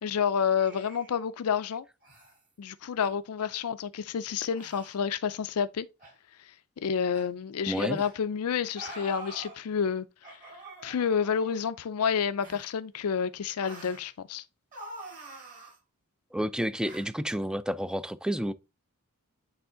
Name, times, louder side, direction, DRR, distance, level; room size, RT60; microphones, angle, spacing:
voice 1, 0.0-1.8 2.6-5.9 6.8-10.4 10.8-14.4, left 7 dB, 75° left, 0.4 m, -29 dB
sound 1, 0.6-1.2 2.0-2.4 3.0-3.1 3.4-3.7 4.5-5.0 6.0-6.1 7.1-7.3 7.9-8.1 8.8-9.6 10.2-11.7 12.4-12.7 13.6-14.0 14.7-15.8 16.8-17.1, right 2 dB, 40° right, 3.7 m, -46 dB
voice 2, 7.7-8.0 16.3-18.5, equal, 5° right, 0.3 m, -30 dB
8.5 x 3.4 x 3.8 m
head